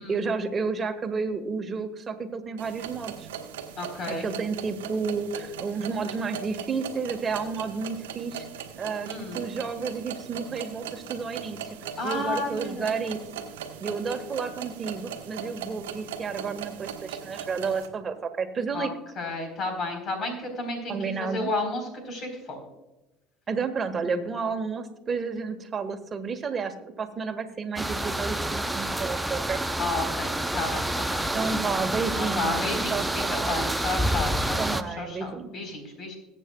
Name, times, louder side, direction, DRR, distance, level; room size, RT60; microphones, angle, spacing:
voice 1, 0.0-3.3 4.1-8.4 8.8-11.6 12.0-13.2 13.8-18.9 20.9-21.5 23.5-29.6 31.3-33.7 34.6-35.5, right 5 dB, 35° right, 6 dB, 1.5 m, -31 dB
sound 1, 2.6-17.9, right 8 dB, 80° right, 1.1 m, -39 dB
voice 2, 3.8-4.3 9.0-9.4 12.0-12.9 18.7-18.9 19.2-22.6 29.8-31.2 32.1-36.2, left 2 dB, 50° left, 4 dB, 4.1 m, -32 dB
sound 2, 27.8-34.8, right 1 dB, 5° right, 0.7 m, -28 dB
21.5 x 8.3 x 2.3 m, 1.0 s
hypercardioid pair, 70°, 0 cm